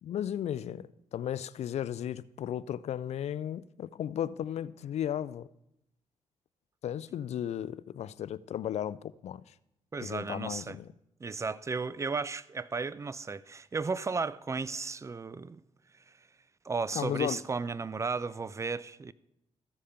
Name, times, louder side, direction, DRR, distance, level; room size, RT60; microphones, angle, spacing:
voice 1, 0.0-5.5 6.8-9.5 10.0-10.9 16.9-17.4, left 10 dB, 65° left, 0.4 m, -35 dB
voice 2, 9.9-10.8 11.2-15.6 16.6-19.1, right 4 dB, 25° right, 0.4 m, -34 dB
14.5 x 4.9 x 5.7 m
supercardioid pair, 55°, 12 cm